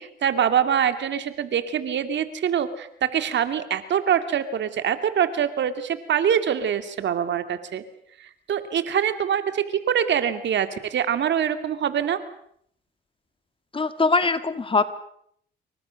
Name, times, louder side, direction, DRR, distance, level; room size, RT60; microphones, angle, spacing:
voice 1, 0.0-7.8 8.5-12.2, right 8 dB, 65° right, 10 dB, 2.5 m, -24 dB
voice 2, 13.7-14.8, left 3 dB, 25° left, 11 dB, 2.1 m, -22 dB
27.5 x 24.5 x 6.5 m, 0.68 s
cardioid pair, 90°, 20 cm